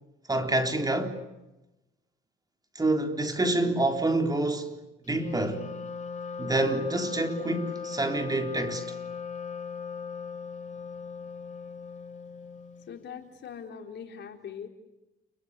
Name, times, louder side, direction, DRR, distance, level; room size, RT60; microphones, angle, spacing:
voice 1, 0.3-1.2 2.8-4.8 5.1-5.7 6.4-8.9, right 2 dB, 20° right, 3.9 m, -27 dB
Wind instrument woodwind instrument, 5.1-12.9, left 6 dB, 35° left, 2.7 m, -38 dB
voice 2, 12.9-14.7, left 7 dB, 65° left, 4.1 m, -41 dB
29.5 x 22.5 x 8.3 m
cardioid pair, 90°, 20 cm